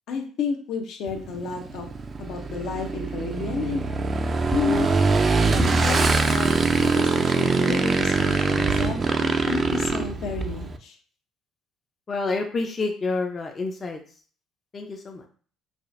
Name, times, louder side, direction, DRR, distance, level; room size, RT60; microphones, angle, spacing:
voice 1, 0.1-1.9 2.2-3.8 4.5-4.9 5.5-11.0, left 5 dB, 65° left, 3 dB, 0.7 m, -31 dB
Motorcycle / Engine, 1.1-10.8, right 4 dB, 30° right, 0.4 m, -23 dB
voice 2, 12.1-14.0 14.7-15.2, left 3 dB, 30° left, 3 dB, 0.5 m, -28 dB
4.8 x 2.3 x 2.5 m, 0.42 s
cardioid pair, 115°, 0 cm